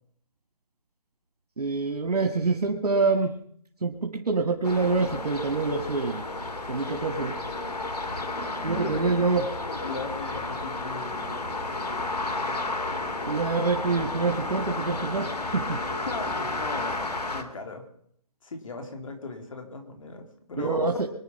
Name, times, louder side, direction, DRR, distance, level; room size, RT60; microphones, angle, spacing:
voice 1, 1.6-3.3 3.8-6.2 6.7-7.3 8.6-9.4 13.3-15.8 20.6-21.1, right 4 dB, 80° right, 5 dB, 2.0 m, -26 dB
sound 1, 4.6-17.4, left 2 dB, 85° left, 2.5 m, -32 dB
voice 2, 8.7-9.0 9.7-12.6 16.0-17.8 18.4-20.9, left 3 dB, 60° left, 5 dB, 3.6 m, -38 dB
25.0 x 9.6 x 5.5 m, 0.66 s
figure-of-eight pair, 155°, 20 cm